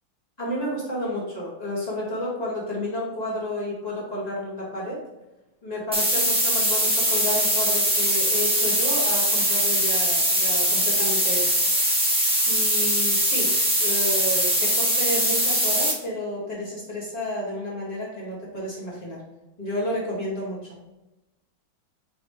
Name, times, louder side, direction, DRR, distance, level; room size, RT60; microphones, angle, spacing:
voice 1, 0.4-5.0 5.6-11.6 12.4-13.5 13.8-19.2 19.6-20.6, equal, 20° left, -7 dB, 2.3 m, -31 dB
sound 1, 5.9-15.9, equal, 5° right, 1.0 m, -22 dB
6.1 x 4.8 x 3.4 m, 1.0 s
omnidirectional pair, 2.2 m